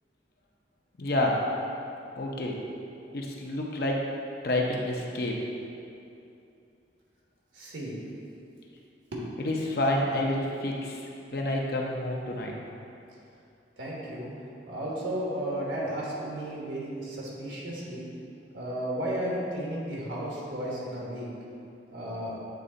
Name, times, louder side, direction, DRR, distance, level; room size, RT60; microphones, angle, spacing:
voice 1, 1.0-1.4 2.2-2.6 3.1-4.1 4.4-5.4 9.4-11.0 11.3-12.6, left 1 dB, 55° left, -1 dB, 0.8 m, -28 dB
voice 2, 7.5-7.9 9.1-9.3 13.8-14.3 14.7-18.1 18.5-21.3 21.9-22.3, right 1 dB, 85° right, -5 dB, 1.4 m, -33 dB
8.2 x 3.3 x 3.9 m, 2.7 s
head